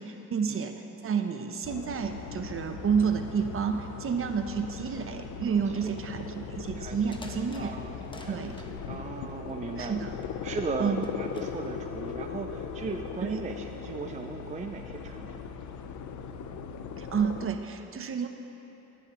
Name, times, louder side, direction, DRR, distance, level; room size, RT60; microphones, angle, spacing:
voice 1, 0.0-7.8 8.3-8.5 9.8-10.1 10.8-11.0 13.2-13.4 17.0-18.3, right 6 dB, 45° right, 6 dB, 0.9 m, -30 dB
sound 1, 1.6-17.5, left 6 dB, 70° left, 0.7 m, -39 dB
voice 2, 6.7-7.2 7.6-7.9 8.2-15.4, right 5 dB, 25° right, 5 dB, 0.5 m, -38 dB
sound 2, 6.8-8.7 9.5-10.4 10.9-11.7, left 1 dB, 15° left, 1.1 m, -49 dB
16.5 x 10.5 x 3.1 m, 3.0 s
cardioid pair, 90°, 30 cm